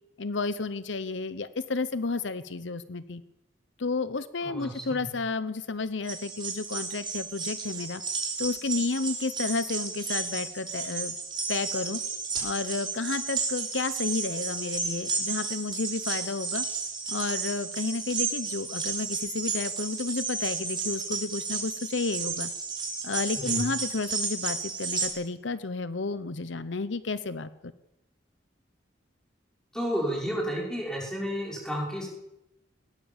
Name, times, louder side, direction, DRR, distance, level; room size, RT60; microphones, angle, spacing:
voice 1, 0.2-3.2 3.8-8.0 8.4-11.1 11.5-12.0 12.4-16.6 17.1-22.5 23.0-27.5, left 3 dB, 75° left, 14 dB, 0.8 m, -31 dB
voice 2, 4.4-5.1 23.4-23.6 29.7-32.1, equal, 5° left, -2 dB, 5.6 m, -32 dB
sound 1, 6.0-25.1, right 5 dB, 25° right, 3.5 m, -33 dB
20.5 x 17.5 x 7.3 m, 0.91 s
head